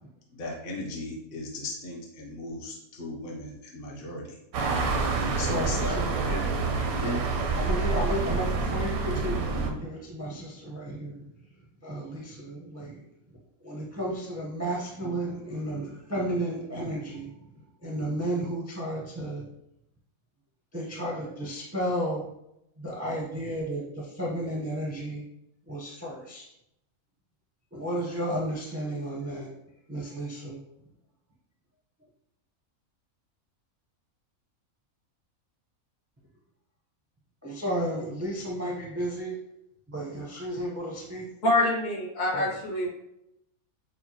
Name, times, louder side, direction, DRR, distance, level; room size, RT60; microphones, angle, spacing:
voice 1, 0.3-4.4 5.4-6.5 7.0-7.2, left 2 dB, 50° left, -1 dB, 0.7 m, -36 dB
sound 1, 4.5-9.7, right 4 dB, 85° right, 1.1 m, -27 dB
voice 2, 5.4-6.3 7.6-11.2 11.8-13.0 13.6-17.3 17.8-19.5 20.7-22.2 22.8-25.2 25.7-26.5 27.7-29.5 29.9-30.6 37.4-39.4 39.9-41.3 42.3-42.5, right 1 dB, 20° right, -3 dB, 0.4 m, -33 dB
voice 3, 41.4-42.9, left 1 dB, 65° left, -4 dB, 1.8 m, -25 dB
6.3 x 2.2 x 2.9 m, 0.81 s
omnidirectional pair, 1.5 m